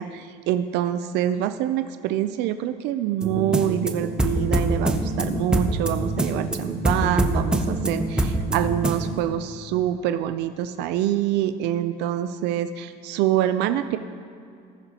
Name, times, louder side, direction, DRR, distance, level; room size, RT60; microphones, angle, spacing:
voice 1, 0.0-14.0, right 11 dB, 70° right, 10 dB, 0.4 m, -25 dB
sound 1, 3.2-9.2, right 1 dB, 5° right, 0.6 m, -25 dB
19.0 x 6.8 x 2.9 m, 2.4 s
cardioid pair, 160°, 18 cm